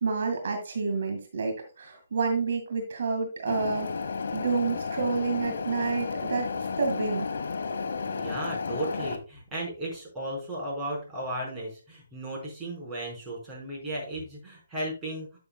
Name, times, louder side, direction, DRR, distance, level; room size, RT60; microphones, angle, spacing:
voice 1, 0.0-3.9 4.3-7.3, right 4 dB, 65° right, 4 dB, 1.9 m, -29 dB
sound 1, 3.5-9.2, left 5 dB, 70° left, 1.2 m, -32 dB
voice 2, 8.1-15.4, right 1 dB, 15° right, -4 dB, 4.9 m, -35 dB
12.0 x 6.9 x 2.3 m, 0.34 s
hypercardioid pair, 160°, 0 cm